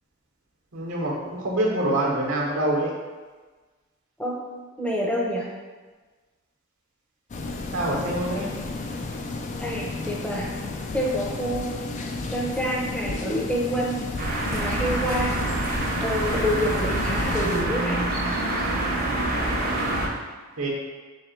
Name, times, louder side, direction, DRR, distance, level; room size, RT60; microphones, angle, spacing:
voice 1, 0.7-2.9 7.7-8.5 20.6-20.7, right 1 dB, 75° right, -4 dB, 0.9 m, -25 dB
voice 2, 4.8-5.5 9.6-10.5 10.9-11.8 12.3-14.1 14.5-15.4 16.0-18.1, equal, 5° left, -3 dB, 0.7 m, -27 dB
sound 1, 7.3-17.6, left 3 dB, 35° left, 0.3 m, -33 dB
sound 2, 14.2-20.1, right 1 dB, 45° right, 0.8 m, -26 dB
3.2 x 3.2 x 4.4 m, 1.3 s
head